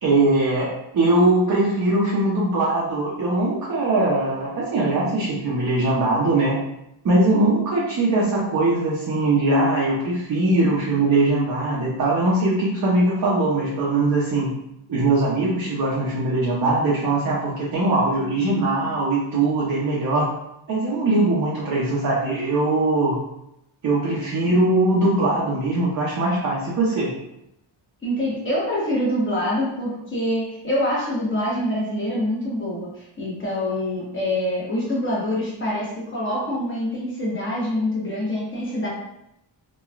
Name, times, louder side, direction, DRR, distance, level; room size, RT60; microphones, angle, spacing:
voice 1, 0.0-6.6 7.0-14.5 14.9-20.3 20.7-23.2 23.8-27.1, right 2 dB, 45° right, -6 dB, 0.7 m, -21 dB
voice 2, 28.0-38.9, left 1 dB, 25° left, -5 dB, 1.0 m, -25 dB
3.0 x 2.3 x 2.4 m, 0.82 s
cardioid pair, 110°, 46 cm